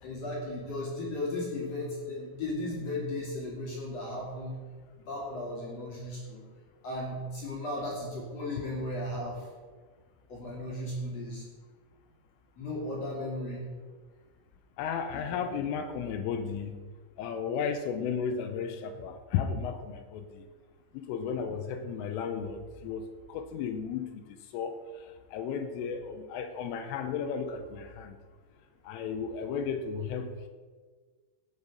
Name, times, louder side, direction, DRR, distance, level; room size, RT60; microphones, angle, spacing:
voice 1, 0.0-4.6 5.0-6.4 6.8-9.5 10.3-11.4 12.6-13.6 15.1-15.4, left 1 dB, 45° left, -3 dB, 2.5 m, -36 dB
voice 2, 14.8-16.8 17.2-20.5 20.9-28.2 28.8-30.5, left 6 dB, 85° left, 7 dB, 3.3 m, -34 dB
16.0 x 7.3 x 5.2 m, 1.5 s
omnidirectional pair, 5.9 m